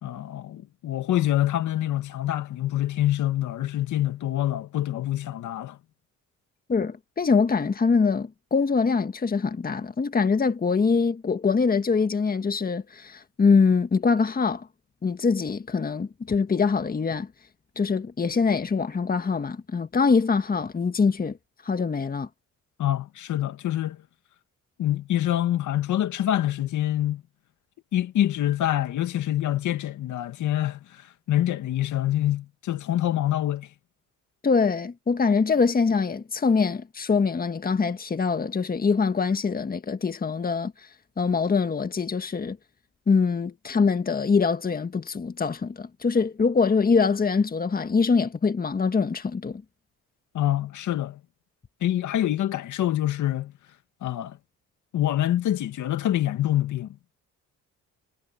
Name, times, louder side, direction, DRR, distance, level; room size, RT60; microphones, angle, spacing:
voice 1, 0.0-5.8 22.8-24.0 24.8-27.2 27.9-33.7 50.3-51.2 51.8-53.5 54.0-54.4 54.9-57.0, left 13 dB, 75° left, 2.2 m, -26 dB
voice 2, 6.7-14.7 15.0-17.3 17.7-21.4 21.6-22.3 34.4-40.9 41.2-42.6 43.1-49.6, left 5 dB, 30° left, 1.7 m, -23 dB
cardioid pair, 90°, 30 cm